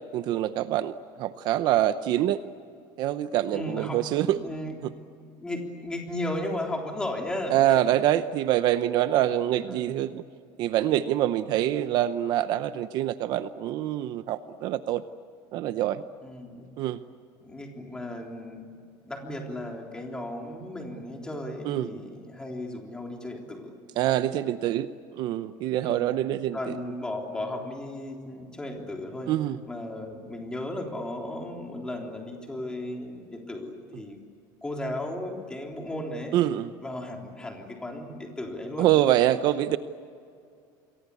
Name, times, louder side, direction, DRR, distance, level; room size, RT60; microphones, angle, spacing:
voice 1, 0.1-2.4 3.0-4.4 4.8-4.9 7.5-10.2 10.6-15.0 15.5-16.0 16.8-17.0 21.6-21.9 24.0-26.6 29.3-29.6 36.3-36.7 38.8-39.8, right 13 dB, 45° right, 12 dB, 0.7 m, -25 dB
voice 2, 3.5-4.0 4.3-4.8 5.2-7.9 9.7-10.0 16.2-16.7 17.4-18.7 19.0-23.7 25.8-29.3 29.7-34.2 34.6-36.4 36.8-38.9, left 1 dB, 10° left, 1 dB, 3.6 m, -35 dB
28.0 x 23.0 x 8.5 m, 2.3 s
cardioid pair, 165°, 10 cm